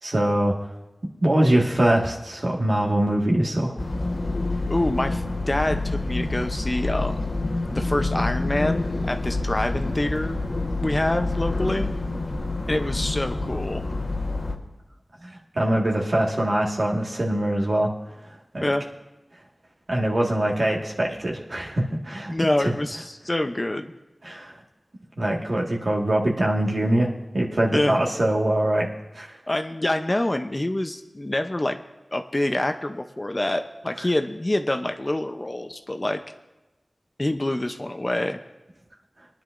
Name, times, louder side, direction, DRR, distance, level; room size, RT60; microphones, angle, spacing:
voice 1, 0.0-0.5 1.2-3.8 15.2-17.9 18.2-18.7 19.9-22.3 22.6-22.7 24.2-24.6 25.2-28.9 29.1-29.4 34.0-34.1, right 1 dB, 60° right, -2 dB, 1.7 m, -23 dB
sound 1, 3.8-14.6, left 2 dB, 75° left, 1.2 m, -27 dB
voice 2, 4.7-7.3 7.7-11.9 12.7-13.8 18.6-18.8 22.3-23.9 27.7-28.0 29.5-31.8 32.1-36.2 37.2-38.4, left 1 dB, 30° left, 7 dB, 0.6 m, -26 dB
22.0 x 10.5 x 2.6 m, 1.0 s
wide cardioid pair, 75°, 0 cm